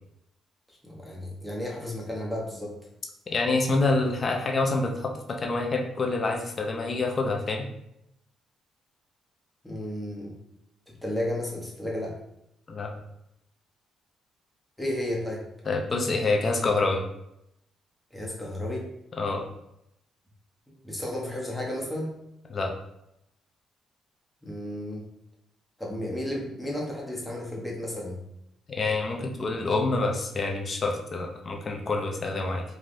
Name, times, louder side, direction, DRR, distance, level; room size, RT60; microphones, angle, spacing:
voice 1, 0.8-2.7 9.6-10.4 10.9-12.2 14.8-15.4 18.1-18.9 20.8-22.2 24.4-25.0 25.8-28.2, left 1 dB, 5° left, -2 dB, 0.9 m, -33 dB
voice 2, 3.3-7.7 12.7-12.9 15.7-17.0 19.2-19.4 22.5-22.7 28.7-32.6, left 3 dB, 40° left, 2 dB, 0.5 m, -27 dB
3.3 x 2.3 x 2.6 m, 0.81 s
cardioid pair, 90°, 0 cm